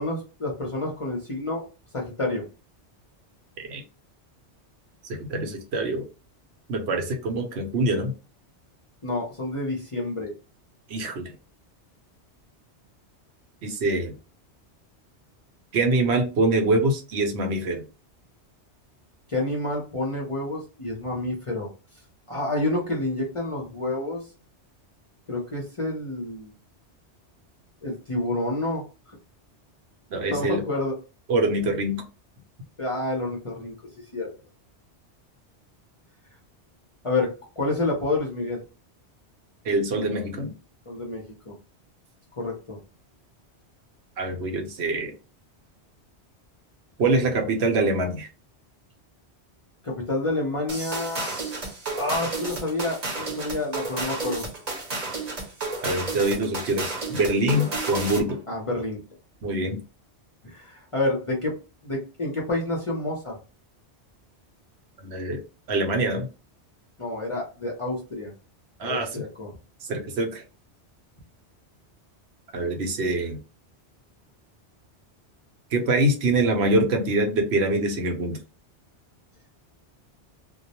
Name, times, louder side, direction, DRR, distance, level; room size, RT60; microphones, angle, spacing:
voice 1, 0.0-1.6 1.9-2.4 9.0-10.3 19.3-21.7 22.3-24.2 25.3-26.5 27.8-29.1 30.3-30.9 32.8-33.8 34.1-34.3 37.0-37.3 37.6-38.6 40.9-41.5 42.3-42.8 49.8-51.3 52.0-54.4 58.5-59.0 60.4-61.5 61.8-63.4 67.0-68.3 68.8-69.5, left 2 dB, 35° left, -2 dB, 0.5 m, -28 dB
voice 2, 5.0-6.0 6.7-8.1 10.9-11.3 13.6-14.1 15.7-17.8 30.1-30.6 31.3-32.0 39.6-40.5 44.2-45.1 47.0-48.3 55.8-58.4 59.4-59.8 65.0-65.4 65.7-66.3 68.8-69.2 69.8-70.4 72.5-73.4 75.7-78.4, right 2 dB, 70° right, 3 dB, 0.9 m, -24 dB
sound 1, 50.7-58.3, right 3 dB, 40° right, 0.7 m, -32 dB
2.2 x 2.0 x 2.8 m, 0.32 s
omnidirectional pair, 1.2 m